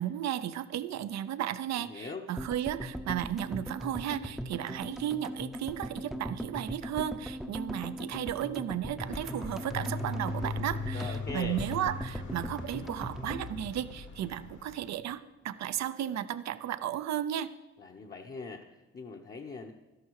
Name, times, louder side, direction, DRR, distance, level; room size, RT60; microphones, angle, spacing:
voice 1, 0.0-17.5, right 11 dB, 60° right, 13 dB, 0.7 m, -34 dB
voice 2, 1.7-2.3 10.9-11.6 17.8-19.7, left 4 dB, 30° left, 0 dB, 1.0 m, -41 dB
sound 1, 2.4-14.6 14.8-14.9 15.1-15.2, equal, ahead, 0.8 m, -40 dB
sound 2, 9.0-14.9, left 3 dB, 70° left, 2.2 m, -39 dB
12.5 x 11.5 x 4.8 m, 1.1 s
cardioid pair, 90°, 30 cm